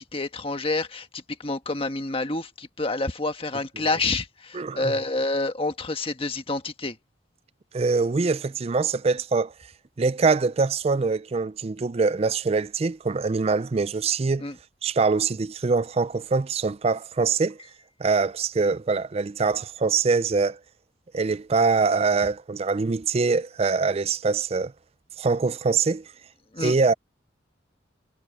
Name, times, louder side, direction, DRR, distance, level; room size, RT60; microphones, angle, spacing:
voice 1, 0.0-7.0 14.4-14.5 26.5-26.7, left 2 dB, 30° left, 1.5 m, -28 dB
voice 2, 4.5-4.9 7.7-9.5 10.0-14.4 14.8-17.6 18.0-20.6 21.1-24.7 25.2-26.0 26.6-26.9, right 4 dB, 35° right, 0.4 m, -23 dB
head